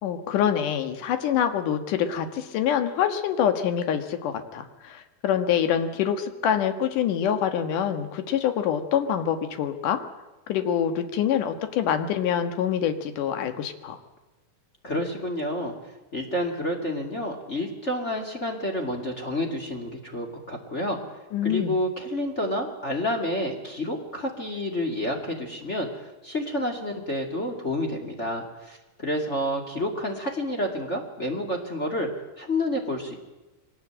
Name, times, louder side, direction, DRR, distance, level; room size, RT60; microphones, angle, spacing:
voice 1, 0.0-10.0 10.5-14.0 21.3-21.8, left 9 dB, 65° left, 7 dB, 2.9 m, -25 dB
voice 2, 14.8-15.7 16.1-21.0 21.4-32.1 32.4-33.2, left 1 dB, 20° left, 1 dB, 2.2 m, -29 dB
23.0 x 19.0 x 8.9 m, 1.1 s
omnidirectional pair, 4.3 m